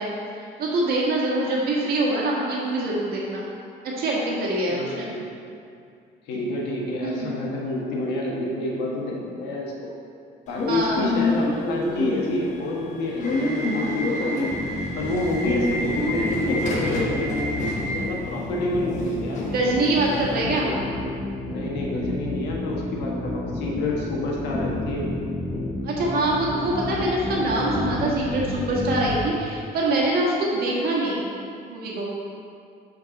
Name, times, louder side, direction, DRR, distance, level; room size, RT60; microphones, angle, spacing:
voice 1, 0.0-3.4 3.8-5.1 7.0-7.3 10.7-11.1 19.5-20.7 25.8-31.2 31.7-32.1, right 2 dB, 65° right, -4 dB, 1.6 m, -24 dB
voice 2, 4.7-5.2 6.2-9.9 10.5-14.5 15.0-19.5 20.4-20.9 21.5-25.1, left 1 dB, 85° left, -2 dB, 1.4 m, -29 dB
Subway metro underground / Alarm, 10.5-20.3, left 2 dB, 45° left, 1.4 m, -27 dB
sound 1, 14.5-29.3, left 2 dB, 20° left, 1.2 m, -30 dB
8.9 x 4.5 x 4.0 m, 2.4 s
cardioid pair, 110°, 17 cm